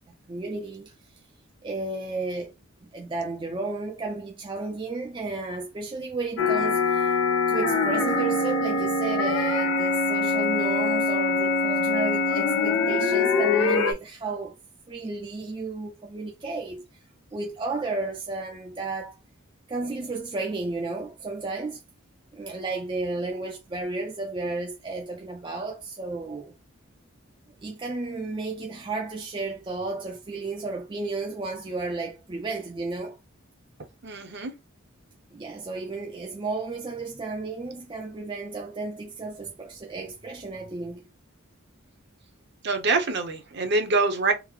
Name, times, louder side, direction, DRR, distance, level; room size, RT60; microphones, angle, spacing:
voice 1, 0.3-0.9 1.6-2.5 2.8-7.2 7.5-14.6 14.9-16.8 17.3-19.2 19.7-21.8 22.3-26.5 27.6-33.2 35.3-41.1, right 3 dB, 25° right, 0.4 m, -33 dB
sound 1, 6.4-13.9, left 3 dB, 75° left, 0.5 m, -23 dB
voice 2, 34.0-34.5 42.6-44.3, right 3 dB, 55° right, 0.7 m, -25 dB
3.7 x 2.0 x 3.0 m
head